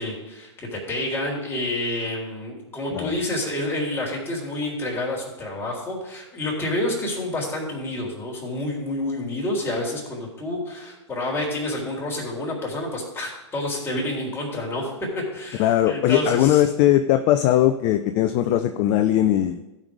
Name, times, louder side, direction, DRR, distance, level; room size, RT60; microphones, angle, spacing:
voice 1, 0.0-16.6, left 1 dB, 15° left, -3 dB, 3.8 m, -29 dB
voice 2, 15.6-19.6, left 12 dB, 40° left, 8 dB, 0.6 m, -19 dB
16.0 x 5.5 x 4.9 m, 1.0 s
hypercardioid pair, 105°, 15 cm